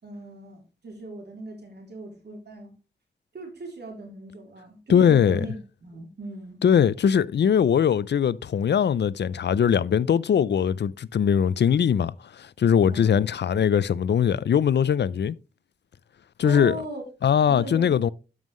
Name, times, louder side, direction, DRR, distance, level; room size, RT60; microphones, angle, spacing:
voice 1, 0.0-2.7 3.3-6.6 12.9-13.2 16.4-17.0 17.5-18.1, right 2 dB, 75° right, 3.4 m, -38 dB
voice 2, 4.9-5.5 6.6-15.4 16.4-16.8 17.2-18.1, left 8 dB, 85° left, 0.4 m, -21 dB
12.5 x 5.5 x 3.1 m
wide cardioid pair, 75°, 17 cm